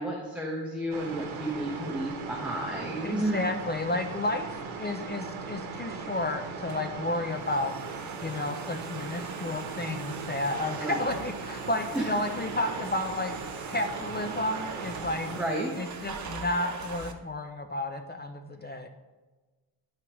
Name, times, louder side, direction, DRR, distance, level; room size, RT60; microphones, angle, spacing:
voice 1, 0.0-3.4 10.8-11.1 11.9-12.1 15.3-15.7, right 1 dB, 5° right, -3 dB, 0.8 m, -32 dB
sound 1, 0.9-15.4, right 5 dB, 90° right, 0.9 m, -39 dB
voice 2, 3.0-13.3 13.7-15.3 15.8-18.9, left 2 dB, 25° left, 6 dB, 0.3 m, -32 dB
Domestic sounds home sounds, 6.4-17.1, right 5 dB, 40° right, 0.7 m, -42 dB
10.5 x 4.7 x 3.0 m, 1.2 s
wide cardioid pair, 130°, 47 cm